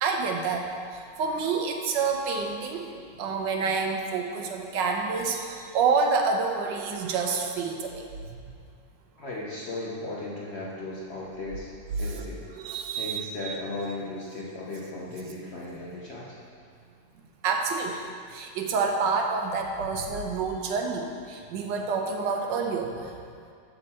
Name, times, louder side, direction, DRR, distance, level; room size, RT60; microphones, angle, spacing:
voice 1, 0.0-2.9 3.2-8.0 12.1-12.2 12.5-13.6 17.4-23.1, right 4 dB, 80° right, 3 dB, 1.4 m, -28 dB
voice 2, 9.2-11.7 12.0-12.4 12.9-16.4, left 2 dB, 50° left, -5 dB, 0.8 m, -36 dB
6.7 x 6.5 x 4.2 m, 2.2 s
omnidirectional pair, 2.0 m